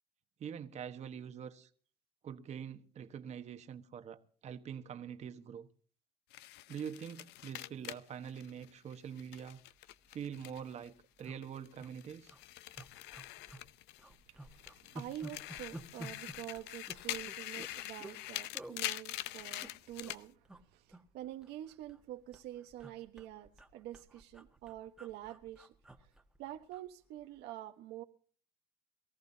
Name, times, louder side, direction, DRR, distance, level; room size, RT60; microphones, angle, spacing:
voice 1, 0.4-1.7 2.2-5.7 6.7-9.6 10.1-12.3, right 8 dB, 40° right, 1.3 m, -45 dB
sound 1, 6.3-10.9 11.2-14.2 14.5-20.2, left 16 dB, 75° left, 0.7 m, -44 dB
sound 2, 9.8-9.9 10.2-10.3 10.5-10.7 11.2-11.9 12.2-12.4 12.7-13.7 14.0-18.2 18.5-18.8 19.4-20.1 20.4-20.6 20.9-22.0 22.3-26.9 27.2-27.4, right 1 dB, 5° right, 1.4 m, -51 dB
voice 2, 14.3-20.4 20.7-25.7 26.4-28.0, right 13 dB, 70° right, 1.2 m, -47 dB
23.0 x 14.5 x 2.8 m
cardioid pair, 120°, 18 cm